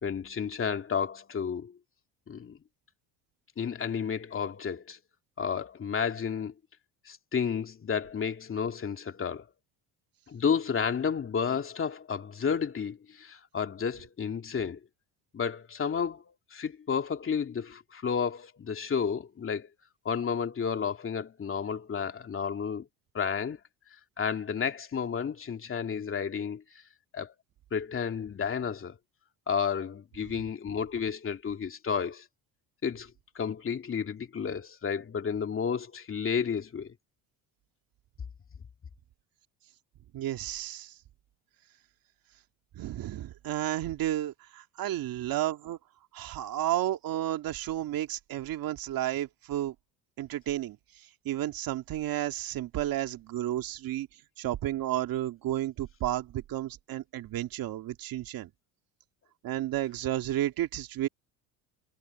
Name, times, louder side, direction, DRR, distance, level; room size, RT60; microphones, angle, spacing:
voice 1, 0.0-1.7 2.3-2.6 3.6-5.0 5.4-6.5 7.1-9.5 10.3-14.8 15.3-19.7 20.0-22.9 23.1-23.6 24.2-26.6 27.1-27.3 27.7-29.0 29.5-32.2 32.8-36.9, left 6 dB, 30° left, 2.5 m, -31 dB
voice 2, 40.1-40.9 42.8-45.8 46.1-49.7 50.2-54.1 54.4-58.5 59.4-61.1, right 13 dB, 60° right, 2.3 m, -32 dB
cardioid pair, 110°, 40 cm